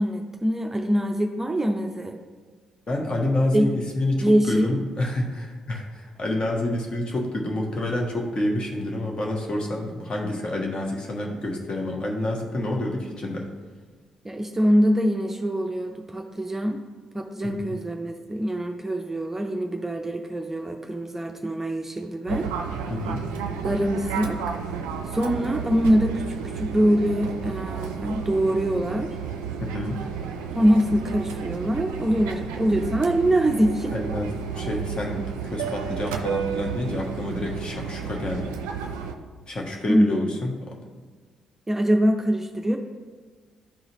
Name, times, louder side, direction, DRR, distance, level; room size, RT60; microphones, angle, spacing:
voice 1, 0.0-2.2 3.5-3.7 4.2-4.8 14.2-16.8 17.1-22.5 23.6-24.4 25.1-26.2 26.5-29.2 30.5-33.9 39.8-40.3 41.7-42.8, equal, 15° right, 3 dB, 0.5 m, -23 dB
voice 2, 2.9-13.5 17.4-17.7 22.9-23.2 29.6-30.0 33.9-38.5 39.5-40.8, left 1 dB, 35° left, 0 dB, 1.2 m, -28 dB
Fixed-wing aircraft airplane, 22.3-39.1, right 7 dB, 70° right, 0.4 m, -32 dB
11.5 x 3.9 x 3.0 m, 1.5 s
figure-of-eight pair, 40°, 2 cm